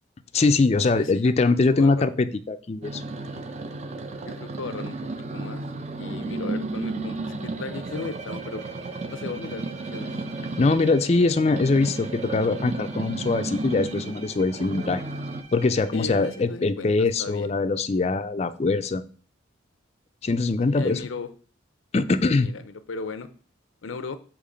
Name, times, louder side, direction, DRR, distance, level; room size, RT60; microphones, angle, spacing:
voice 1, 0.3-3.0 10.6-15.0 15.5-19.0 20.2-21.0 21.9-22.5, left 3 dB, 30° left, 11 dB, 0.4 m, -22 dB
voice 2, 0.9-2.1 4.2-5.0 5.3-5.6 5.9-8.6 9.1-9.7 9.9-10.1 10.6-10.8 11.2-11.3 15.9-17.5 20.7-21.3 22.4-23.3 23.8-24.2, left 4 dB, 85° left, 12 dB, 0.6 m, -36 dB
sound 1, 2.8-15.4, right 2 dB, 35° right, 0.5 m, -33 dB
Bowed string instrument, 7.9-16.7, right 4 dB, 80° right, 1.8 m, -48 dB
6.6 x 3.0 x 5.0 m, 0.41 s
head